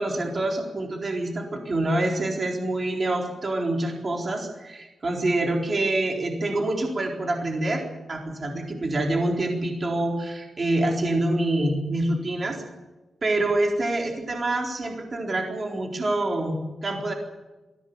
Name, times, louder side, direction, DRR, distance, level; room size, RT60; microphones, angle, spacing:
voice 1, 0.0-7.8 8.1-12.6 13.2-17.1, right 2 dB, 30° right, 1 dB, 4.1 m, -26 dB
22.5 x 16.5 x 9.6 m, 1.1 s
wide cardioid pair, 165°, 0 cm